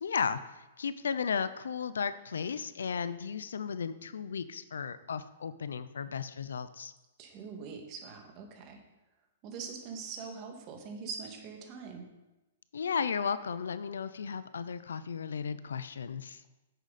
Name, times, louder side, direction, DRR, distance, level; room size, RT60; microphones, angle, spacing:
voice 1, 0.0-6.9 12.7-16.4, left 6 dB, 85° left, 14 dB, 0.6 m, -35 dB
voice 2, 7.2-8.8 9.4-12.1, right 5 dB, 35° right, 2 dB, 2.2 m, -43 dB
10.0 x 8.2 x 4.3 m, 1.0 s
hypercardioid pair, 140°, 0 cm